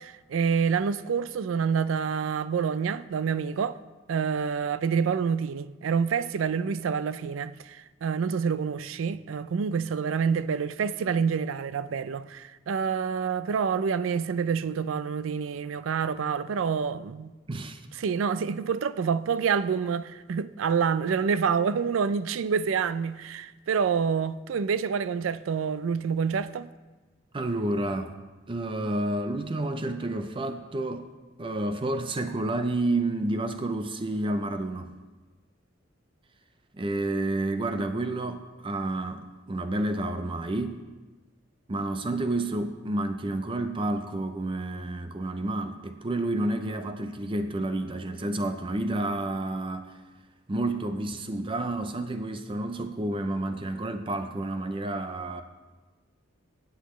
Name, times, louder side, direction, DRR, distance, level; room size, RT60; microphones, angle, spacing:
voice 1, 0.0-3.8 4.1-17.3 18.0-26.7, right 6 dB, 80° right, 0.4 m, -27 dB
voice 2, 17.5-17.9 27.3-28.1 28.5-31.1 31.4-34.9 36.8-40.8 41.7-50.0 50.5-55.4, right 2 dB, 25° right, 0.5 m, -30 dB
16.0 x 8.0 x 3.1 m
head